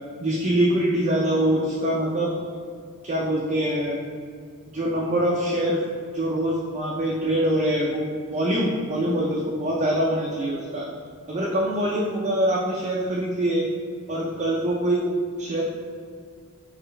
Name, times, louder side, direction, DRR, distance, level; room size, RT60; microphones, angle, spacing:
voice 1, 0.2-2.4 3.0-4.0 4.7-5.8 6.1-8.1 8.3-10.9 11.3-13.7 14.1-15.0 15.4-15.6, right 1 dB, 30° right, -4 dB, 0.4 m, -24 dB
3.9 x 3.3 x 3.2 m, 2.1 s
head